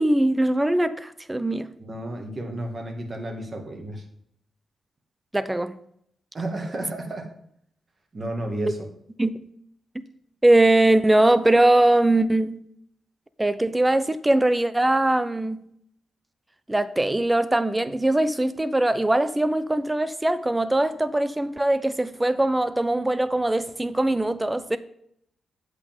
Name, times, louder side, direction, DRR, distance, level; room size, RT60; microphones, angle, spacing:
voice 1, 0.0-1.7 5.3-5.8 9.2-9.4 10.4-12.6 13.4-15.6 16.7-24.8, right 1 dB, 15° right, 0.6 m, -21 dB
voice 2, 1.8-4.0 6.3-7.3 8.1-8.8, right 1 dB, 35° right, 2.1 m, -32 dB
8.3 x 8.1 x 3.7 m
cardioid pair, 90°, 0 cm